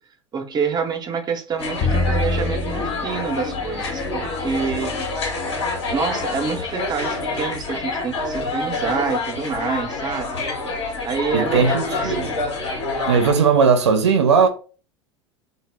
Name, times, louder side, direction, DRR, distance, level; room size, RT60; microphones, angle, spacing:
voice 1, 0.3-4.9 5.9-10.4 11.1-12.3, right 5 dB, 30° right, 0.6 m, -27 dB
sound 1, 1.6-13.3, left 3 dB, 80° left, 0.9 m, -27 dB
Bowed string instrument, 1.8-7.9, left 3 dB, 45° left, 0.5 m, -29 dB
voice 2, 11.3-12.3 13.1-14.5, right 5 dB, 80° right, 0.5 m, -17 dB
2.0 x 2.0 x 3.3 m
hypercardioid pair, 75°, 14 cm